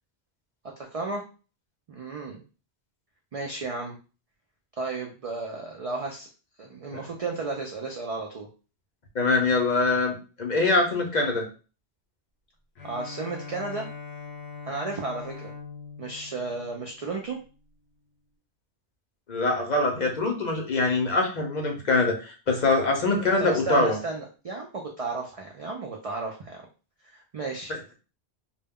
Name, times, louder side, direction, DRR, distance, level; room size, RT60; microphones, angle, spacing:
voice 1, 0.8-1.2 1.9-2.4 3.3-4.0 4.8-6.3 6.6-8.5 12.8-13.9 14.7-15.5 16.0-17.4 23.4-26.6 27.1-27.8, right 3 dB, 60° right, 1 dB, 0.3 m, -33 dB
voice 2, 9.1-11.5 19.3-24.0, left 3 dB, 50° left, 1 dB, 0.6 m, -24 dB
Bowed string instrument, 12.8-17.5, left 5 dB, 80° left, 1.0 m, -42 dB
2.2 x 2.1 x 3.5 m, 0.34 s
omnidirectional pair, 1.1 m